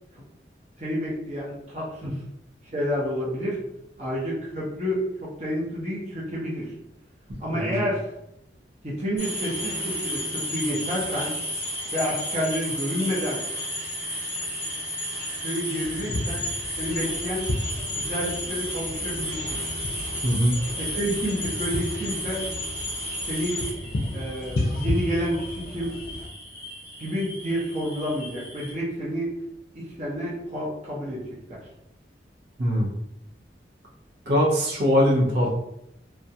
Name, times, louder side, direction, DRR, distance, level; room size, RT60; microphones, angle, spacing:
voice 1, 0.8-2.1 2.6-3.6 4.0-6.7 7.4-8.1 8.8-11.3 11.9-13.4 15.4-16.5 16.8-17.5 17.9-19.6 20.8-22.4 23.3-23.6 24.1-25.9 27.0-29.3 29.7-31.6, equal, 40° right, -6 dB, 0.7 m, -29 dB
sound 1, 9.2-28.7, equal, 15° left, 0.9 m, -33 dB
sound 2, 15.8-26.3, left 1 dB, 55° left, 0.5 m, -33 dB
voice 2, 20.2-20.6 32.6-32.9 34.3-35.5, equal, 75° right, -4 dB, 0.7 m, -21 dB
2.3 x 2.1 x 2.7 m, 0.80 s
head